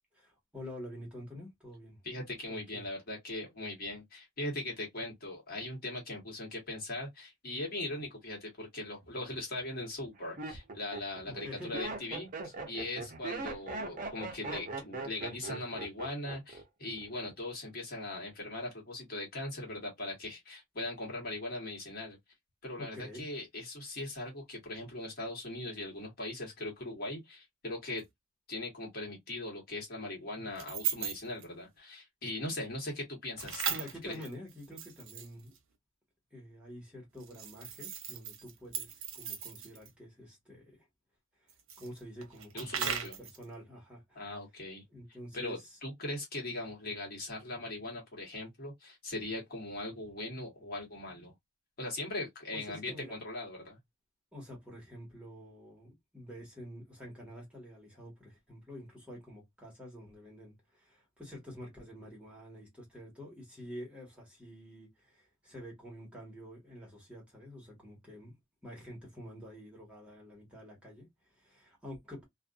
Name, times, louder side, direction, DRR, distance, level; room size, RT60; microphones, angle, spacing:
voice 1, 0.1-2.0 2.5-2.9 11.3-11.7 22.8-23.2 33.6-35.5 36.3-40.9 41.4-41.5 41.8-44.2 44.9-45.8 52.5-53.1 54.3-68.4 68.6-72.2, equal, 5° right, 1.4 m, -48 dB
voice 2, 2.0-22.2 22.6-28.0 28.5-33.6 34.0-34.2 42.5-43.2 44.1-44.8 45.3-51.3 51.8-53.8, left 2 dB, 45° left, 1.4 m, -40 dB
Laughter, 9.0-9.4 10.0-16.6 16.9-17.4, right 3 dB, 40° right, 0.7 m, -40 dB
sound 1, 28.0-28.1 30.5-31.4 33.4-35.6 37.2-39.9 41.5-43.4, right 8 dB, 75° right, 0.7 m, -38 dB
2.5 x 2.5 x 2.4 m
head